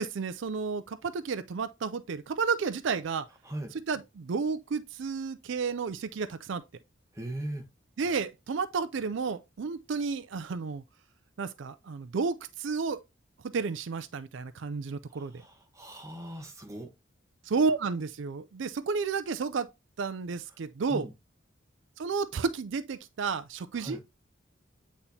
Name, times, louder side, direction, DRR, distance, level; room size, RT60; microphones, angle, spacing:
voice 1, 0.0-3.3 3.7-6.6 8.0-10.8 11.4-13.0 13.4-15.4 17.4-19.7 20.0-21.1 22.0-24.0, right 5 dB, 75° right, 0.4 m, -32 dB
voice 2, 7.1-7.7 15.1-16.9 20.9-21.1 23.8-24.0, right 1 dB, 15° right, 1.1 m, -39 dB
8.7 x 4.1 x 2.8 m
head